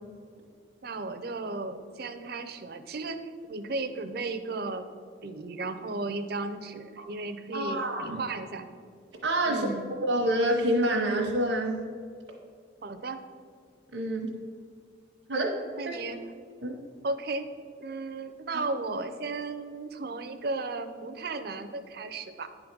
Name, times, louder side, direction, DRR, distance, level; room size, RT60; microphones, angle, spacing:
voice 1, 0.8-3.2 3.5-4.9 5.2-8.7 9.5-9.9 12.8-13.2 15.8-16.2 17.0-17.5 17.8-22.5, right 3 dB, 60° right, 9 dB, 0.6 m, -35 dB
voice 2, 7.5-8.2 9.2-9.7 10.0-11.8 13.9-14.3 15.3-15.5 15.8-16.0 16.6-16.8 18.5-18.6, right 1 dB, 85° right, -3 dB, 1.0 m, -27 dB
10.0 x 3.9 x 6.1 m, 2.2 s
head